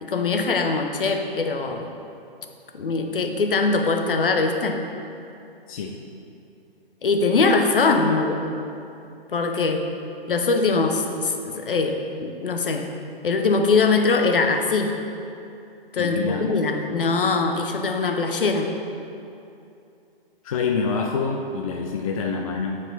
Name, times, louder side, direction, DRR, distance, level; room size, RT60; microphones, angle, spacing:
voice 1, 0.0-1.9 2.7-4.8 7.0-8.5 9.3-9.8 10.3-12.9 13.2-14.9 15.9-18.7, left 4 dB, 65° left, 4 dB, 0.8 m, -22 dB
voice 2, 16.0-16.6 20.4-22.8, left 5 dB, 35° left, 2 dB, 0.5 m, -26 dB
8.7 x 5.0 x 4.1 m, 2.7 s
figure-of-eight pair, 125°, 29 cm